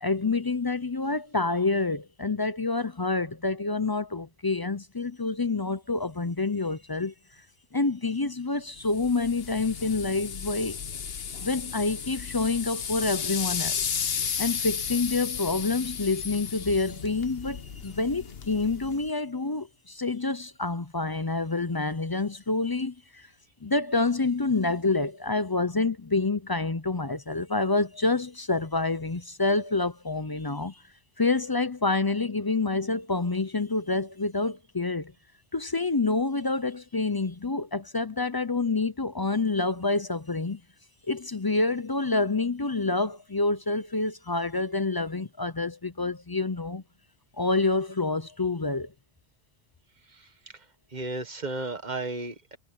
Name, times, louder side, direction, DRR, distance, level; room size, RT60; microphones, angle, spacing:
voice 1, 0.0-7.1 7.7-10.8 11.4-13.8 14.4-23.3 23.6-30.8 31.2-35.1 35.5-40.6 41.1-46.8 47.4-48.9, left 3 dB, 25° left, 0.5 m, -27 dB
sound 1, 8.8-19.1, left 7 dB, 70° left, 1.2 m, -34 dB
voice 2, 50.1-50.6 50.9-52.6, right 2 dB, 45° right, 1.6 m, -34 dB
omnidirectional pair, 1.1 m